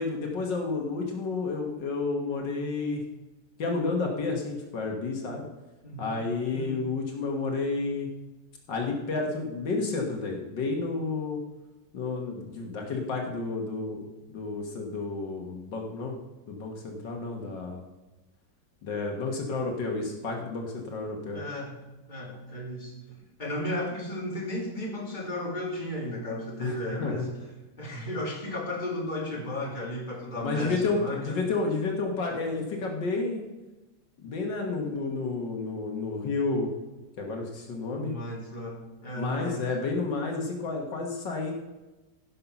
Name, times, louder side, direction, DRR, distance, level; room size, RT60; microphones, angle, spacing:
voice 1, 0.0-3.0 3.6-5.4 6.0-8.1 8.7-11.4 11.9-16.1 16.5-17.8 18.8-21.4 26.6-27.3 30.4-33.4 34.2-36.7 37.2-38.1 39.1-41.5, left 3 dB, 75° left, 1 dB, 2.1 m, -31 dB
voice 2, 5.8-6.2 6.5-6.8 21.3-21.8 22.1-27.3 27.8-31.4 37.9-39.6, left 1 dB, 25° left, -3 dB, 2.7 m, -34 dB
15.5 x 5.6 x 5.9 m, 1.1 s
omnidirectional pair, 2.0 m